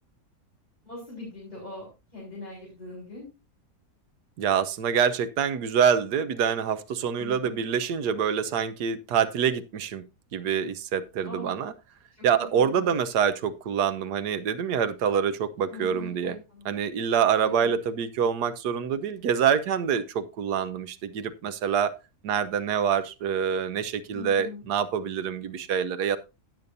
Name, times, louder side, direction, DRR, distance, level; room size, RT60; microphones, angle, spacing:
voice 1, 0.8-1.9 2.1-3.3 7.2-7.5 11.2-11.5 12.2-12.9 15.7-16.7 17.4-17.7 24.1-24.6, left 2 dB, 25° left, -6 dB, 4.9 m, -41 dB
voice 2, 4.4-10.0 10.3-11.7 12.2-16.4 16.6-22.0 22.2-26.2, right 7 dB, 85° right, 13 dB, 1.4 m, -26 dB
16.5 x 6.9 x 2.7 m, 0.27 s
omnidirectional pair, 1.7 m